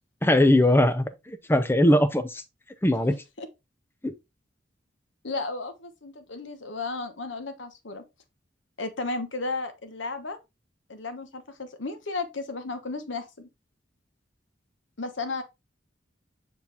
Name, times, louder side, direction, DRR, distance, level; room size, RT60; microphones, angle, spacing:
voice 1, 0.2-2.4 2.8-3.2 4.0-4.1, left 1 dB, 10° left, 0.6 m, -21 dB
voice 2, 5.2-8.0 8.8-10.4 10.9-13.5 15.0-15.4, left 3 dB, 80° left, 1.1 m, -34 dB
5.9 x 4.7 x 3.4 m
head